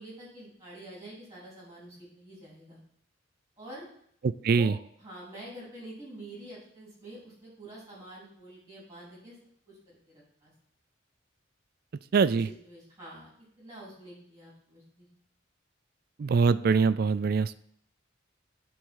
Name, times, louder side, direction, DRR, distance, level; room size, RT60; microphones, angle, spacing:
voice 1, 0.0-2.8 3.6-3.9 4.5-9.4 9.7-10.5 12.3-13.3 13.6-15.1, right 1 dB, 15° right, -5 dB, 3.8 m, -47 dB
voice 2, 4.2-4.8 12.1-12.5 16.2-17.6, right 5 dB, 50° right, 15 dB, 0.3 m, -23 dB
9.1 x 3.6 x 6.4 m, 0.66 s
head